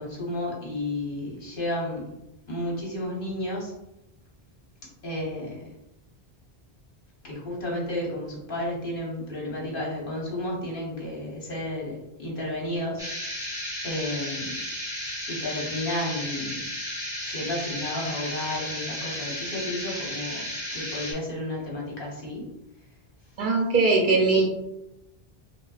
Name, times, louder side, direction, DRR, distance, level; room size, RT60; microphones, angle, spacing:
voice 1, 0.0-2.1 2.5-3.7 5.0-5.6 7.2-13.0 13.8-14.6 15.3-16.6 17.2-20.4 20.7-22.5, left 1 dB, 60° left, -3 dB, 1.3 m, -32 dB
sound 1, 13.0-21.1, equal, 5° right, 1.1 m, -34 dB
voice 2, 23.4-24.5, right 3 dB, 60° right, 1 dB, 0.7 m, -20 dB
5.3 x 2.3 x 2.4 m, 0.88 s
omnidirectional pair, 1.0 m